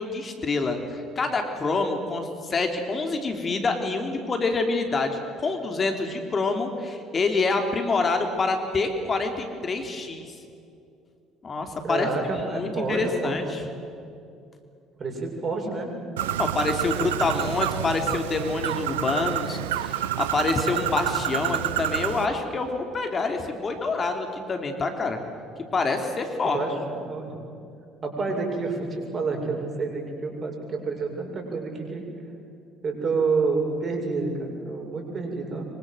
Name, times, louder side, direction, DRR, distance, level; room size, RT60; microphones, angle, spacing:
voice 1, 0.0-10.3 11.4-13.6 16.4-25.2 25.7-26.6, left 3 dB, 35° left, 5 dB, 3.3 m, -27 dB
voice 2, 11.8-13.4 15.0-15.9 26.5-27.3 28.0-32.0 32.8-35.7, right 4 dB, 40° right, 2 dB, 7.5 m, -28 dB
Bird, 16.2-22.3, right 12 dB, 80° right, 0.9 m, -28 dB
25.0 x 25.0 x 8.0 m, 2.5 s
hypercardioid pair, 60°, 0 cm